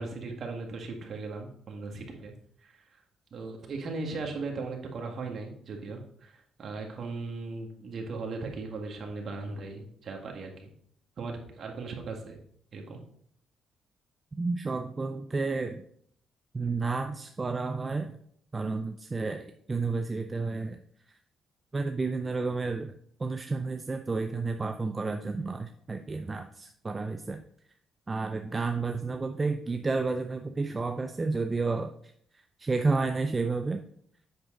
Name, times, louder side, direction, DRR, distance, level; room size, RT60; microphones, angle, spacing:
voice 1, 0.0-2.3 2.6-2.9 3.3-10.7 11.2-12.4 12.7-13.0 28.2-28.3, right 3 dB, 50° right, 1 dB, 1.7 m, -38 dB
voice 2, 14.4-15.8 16.5-18.2 18.5-20.8 21.7-22.9 23.2-27.4 28.1-31.9 32.6-33.8, right 3 dB, 25° right, 6 dB, 0.5 m, -31 dB
8.0 x 6.1 x 3.8 m, 0.64 s
cardioid pair, 90°, 0 cm